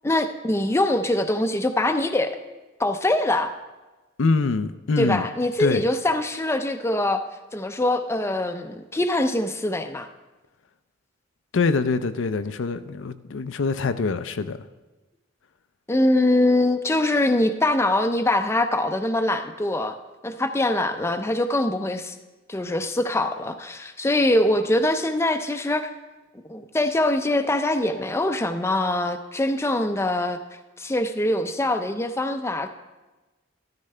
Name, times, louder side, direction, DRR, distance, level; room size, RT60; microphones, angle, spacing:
voice 1, 0.0-2.4 2.8-3.5 5.0-7.2 7.5-10.1 15.9-20.0 20.2-22.1 22.5-25.9 26.5-30.4 30.8-32.7, left 1 dB, 15° left, 0.5 m, -23 dB
voice 2, 4.2-5.3 5.6-5.8 11.5-14.6, left 4 dB, 75° left, 0.5 m, -24 dB
13.5 x 12.5 x 3.3 m
head